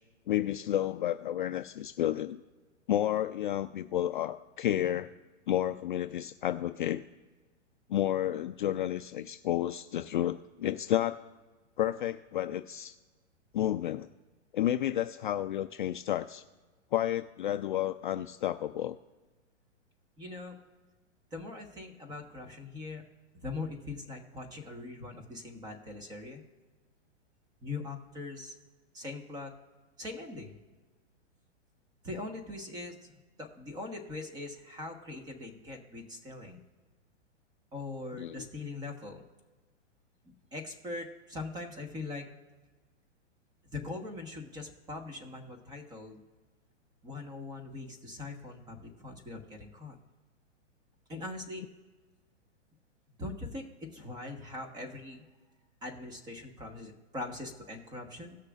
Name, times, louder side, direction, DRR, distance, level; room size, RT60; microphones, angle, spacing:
voice 1, 0.3-2.4 2.9-5.1 5.5-7.0 7.9-11.2 11.8-12.9 13.5-14.1 14.5-16.4 16.9-19.0 38.2-38.4, left 12 dB, 45° left, 8 dB, 0.4 m, -31 dB
voice 2, 20.2-20.6 21.3-23.0 23.4-26.4 27.6-28.5 28.9-29.5 30.0-30.6 32.0-33.1 33.4-36.6 37.7-39.2 40.2-42.3 43.7-46.2 47.0-49.9 51.1-51.6 53.2-55.2 55.8-58.4, left 2 dB, 10° right, 4 dB, 1.2 m, -41 dB
18.0 x 6.6 x 2.4 m, 1.3 s
hypercardioid pair, 150°, 36 cm